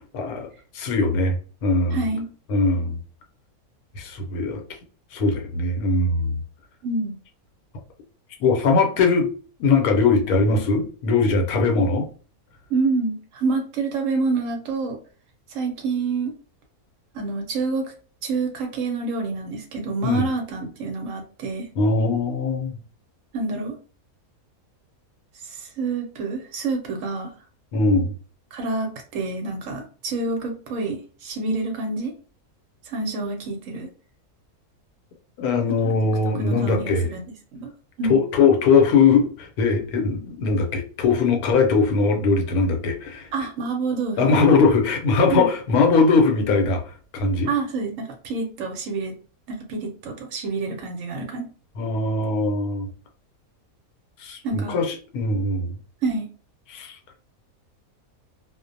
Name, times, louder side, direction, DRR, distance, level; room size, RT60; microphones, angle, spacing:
voice 1, 0.1-0.5 0.7-2.0 2.5-3.0 3.9-4.6 5.1-6.4 8.4-9.3 9.6-12.1 20.0-20.3 21.8-22.8 27.7-28.1 35.4-37.1 38.1-43.3 44.2-46.8 47.1-47.5 51.8-52.9 54.2-55.7 56.7-57.0, left 4 dB, 80° left, 1.1 m, -20 dB
voice 2, 1.9-2.3 6.8-7.1 12.7-15.0 15.5-16.3 17.1-17.9 18.2-21.7 23.3-23.7 25.4-27.3 28.5-32.1 32.9-33.9 35.8-36.0 36.3-37.7 38.0-38.2 43.3-44.4 45.3-45.5 47.5-49.2 49.5-51.5 54.4-54.8 56.0-56.3, right 3 dB, 70° right, 0.9 m, -27 dB
2.4 x 2.0 x 2.5 m
omnidirectional pair, 1.6 m